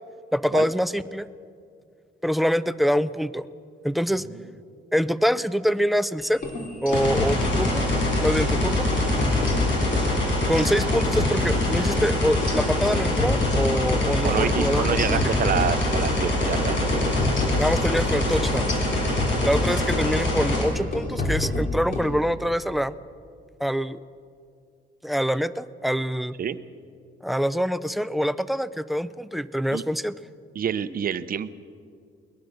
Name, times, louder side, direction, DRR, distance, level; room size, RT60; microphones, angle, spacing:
voice 1, 0.3-1.3 2.2-3.5 3.8-4.3 4.9-6.4 6.8-7.8 8.2-8.9 10.5-15.4 17.6-18.7 19.4-22.9 23.6-24.0 25.0-26.4 27.2-30.2, equal, ahead, 16 dB, 0.4 m, -25 dB
sound 1, 6.3-8.1 8.4-8.6 8.9-10.1 10.4-14.1 14.4-14.6 14.9-16.1 16.4-16.6 16.9-20.1 20.4-20.7 20.9-22.1, left 2 dB, 45° left, 3.8 m, -29 dB
sound 2, 6.9-20.6, left 1 dB, 75° left, 6.7 m, -24 dB
voice 2, 14.2-17.2 26.4-26.6 29.7-29.8 30.5-31.5, right 8 dB, 50° right, 13 dB, 0.8 m, -27 dB
22.0 x 20.5 x 6.6 m, 2.3 s
cardioid pair, 150°, 19 cm